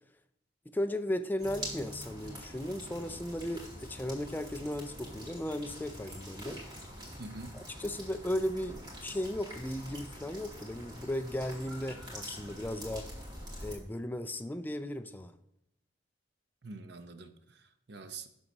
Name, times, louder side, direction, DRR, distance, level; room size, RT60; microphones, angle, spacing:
voice 1, 0.7-6.6 7.5-13.1 13.6-15.3, left 1 dB, 10° left, 10 dB, 0.4 m, -36 dB
sound 1, 1.4-13.7, equal, 25° right, 2.5 m, -45 dB
voice 2, 7.2-7.6 16.6-18.3, right 3 dB, 60° right, 9 dB, 0.7 m, -46 dB
11.0 x 4.0 x 6.0 m, 0.80 s
head